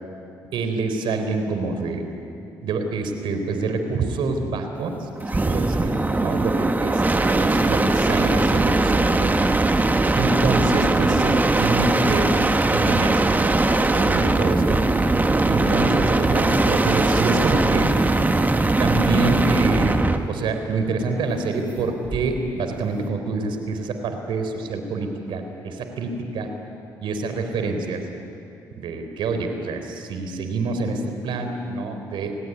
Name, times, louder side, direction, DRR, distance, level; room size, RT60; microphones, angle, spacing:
voice 1, 0.5-2.0 2.6-5.1 5.4-9.5 10.2-12.3 12.7-14.8 15.4-17.9 18.8-20.0 20.3-26.5 27.0-28.1 28.8-32.4, right 3 dB, 75° right, 6 dB, 3.7 m, -26 dB
sound 1, 5.2-20.3 22.0-22.5, right 2 dB, 20° right, 1.7 m, -20 dB
29.5 x 18.0 x 9.8 m, 2.7 s
supercardioid pair, 65°, 8 cm